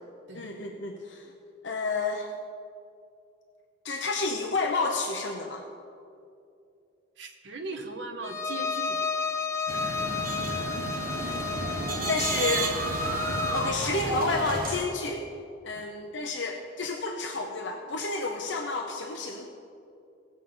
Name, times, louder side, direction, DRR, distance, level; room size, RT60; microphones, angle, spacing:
voice 1, 0.3-1.3 1.6-2.3 3.8-5.7 9.7-9.8 12.1-12.7 13.5-15.3 15.6-19.5, left 3 dB, 70° left, 2 dB, 0.9 m, -30 dB
voice 2, 7.2-9.0 15.7-15.9, right 3 dB, 65° right, 3 dB, 1.2 m, -38 dB
Bowed string instrument, 8.2-13.8, left 5 dB, 15° left, 0.6 m, -32 dB
sound 1, 9.7-14.8, right 2 dB, 50° right, 1.3 m, -31 dB
18.0 x 7.2 x 5.6 m, 2.6 s
head